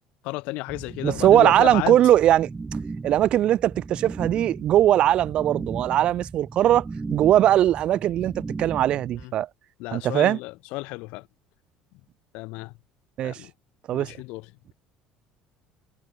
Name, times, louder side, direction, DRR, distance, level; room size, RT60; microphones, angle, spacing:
voice 1, 0.2-2.0 9.2-9.3 9.8-11.3 12.3-12.7 13.2-13.5 13.9-14.4, left 24 dB, 75° left, 3.5 m, -32 dB
sound 1, 0.7-9.2, right 4 dB, 20° right, 4.1 m, -36 dB
voice 2, 1.0-2.5 3.0-9.5 9.9-10.4 13.2-13.4 13.9-14.1, right 12 dB, 55° right, 0.4 m, -20 dB
supercardioid pair, 100°, 2 cm